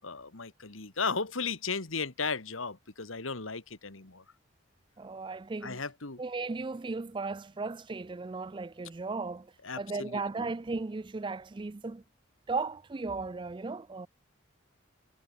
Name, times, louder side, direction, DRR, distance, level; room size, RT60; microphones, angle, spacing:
voice 1, 0.0-4.2 5.6-6.2 9.6-10.5, left 4 dB, 85° left, 2.2 m, -35 dB
voice 2, 5.0-5.8 6.2-12.0 12.5-14.1, right 3 dB, 25° right, 0.4 m, -36 dB
head